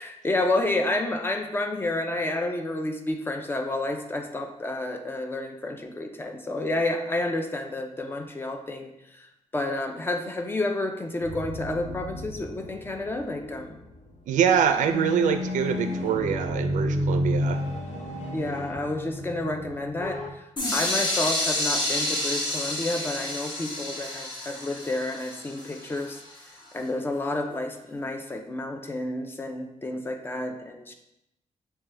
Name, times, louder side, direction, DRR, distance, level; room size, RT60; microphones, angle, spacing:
voice 1, 0.0-13.8 18.3-20.4 20.7-26.2 26.7-30.9, left 2 dB, 15° left, 4 dB, 0.3 m, -30 dB
sound 1, 11.2-14.0 14.4-14.6 14.8-20.3, left 1 dB, 70° left, 0.8 m, -32 dB
voice 2, 14.3-17.6, right 7 dB, 85° right, 8 dB, 0.4 m, -24 dB
sound 2, 20.6-26.4, left 1 dB, 40° left, 1.0 m, -29 dB
5.9 x 2.2 x 3.2 m, 0.82 s
wide cardioid pair, 165°, 13 cm